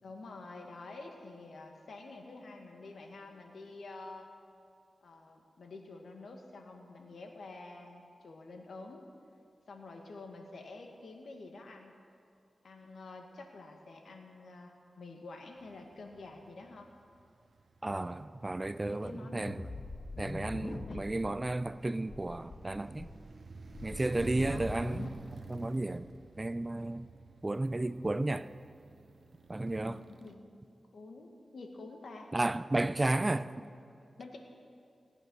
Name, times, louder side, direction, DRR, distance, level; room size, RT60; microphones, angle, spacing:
voice 1, 0.0-4.3 5.0-9.0 9.7-11.9 12.6-16.9 18.9-19.5 20.5-21.0 23.9-24.8 29.9-30.4 30.9-32.3 34.2-34.4, left 3 dB, 80° left, 1.7 m, -48 dB
sound 1, 15.6-30.3, right 4 dB, 60° right, 0.7 m, -51 dB
voice 2, 17.8-19.7 20.2-23.1 23.8-25.1 25.5-26.1 26.4-27.1 27.4-28.5 29.5-30.0 32.3-33.5, right 2 dB, 25° right, 0.4 m, -33 dB
sound 2, 19.5-21.3 21.7-21.8 22.1-22.6 23.0-25.1, left 2 dB, 50° left, 1.2 m, -43 dB
17.5 x 8.9 x 6.3 m
wide cardioid pair, 70°, 0 cm